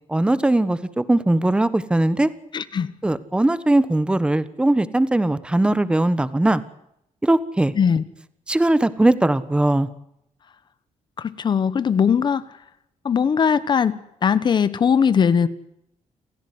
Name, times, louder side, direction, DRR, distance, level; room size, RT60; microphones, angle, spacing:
voice 1, 0.1-2.3 3.0-6.6 7.2-7.7 8.5-9.9, right 1 dB, 10° right, 15 dB, 1.3 m, -19 dB
voice 2, 2.5-2.9 7.7-8.0 11.2-12.4 13.0-15.5, left 7 dB, 35° left, 15 dB, 1.2 m, -20 dB
29.5 x 15.5 x 9.6 m, 0.79 s
wide cardioid pair, 175°, 13 cm